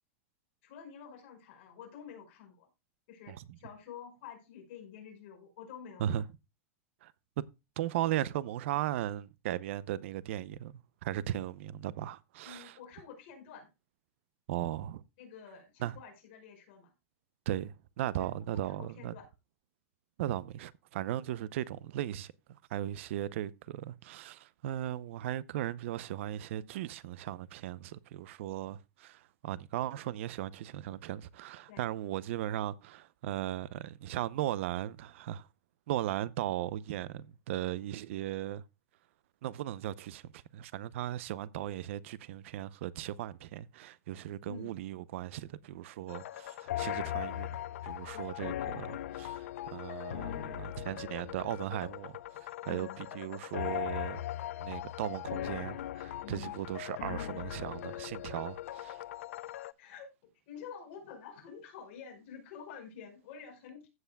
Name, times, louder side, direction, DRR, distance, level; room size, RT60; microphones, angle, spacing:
voice 1, 0.6-2.7 3.1-6.2 12.4-13.7 15.2-16.9 18.2-18.3 18.5-19.3 31.7-31.9 44.4-44.7 48.1-48.3 52.6-53.0 56.2-56.5 59.8-63.9, left 7 dB, 50° left, 5.2 m, -49 dB
voice 2, 7.8-10.7 11.0-12.8 14.5-15.0 15.8-16.0 17.5-19.2 20.2-35.5 35.9-38.6 39.4-54.2 54.6-59.0, right 13 dB, 60° right, 0.6 m, -37 dB
sound 1, 46.1-59.7, left 13 dB, 75° left, 0.5 m, -39 dB
15.5 x 8.1 x 2.2 m
supercardioid pair, 160°, 8 cm